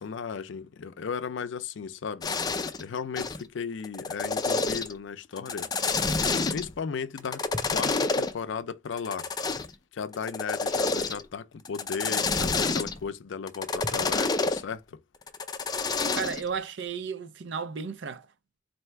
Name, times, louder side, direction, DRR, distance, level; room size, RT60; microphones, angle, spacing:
voice 1, 0.0-2.3 2.8-5.7 6.3-7.5 7.7-9.3 9.9-15.0, left 6 dB, 85° left, 0.4 m, -35 dB
sound 1, 2.2-2.8 3.2-3.4 3.8-5.0 5.4-6.7 7.2-8.3 9.0-9.7 10.1-11.3 11.7-13.0 13.5-14.6 15.3-16.4, left 4 dB, 20° left, 0.4 m, -28 dB
voice 2, 16.1-18.3, right 6 dB, 80° right, 0.6 m, -33 dB
3.2 x 2.7 x 4.5 m
head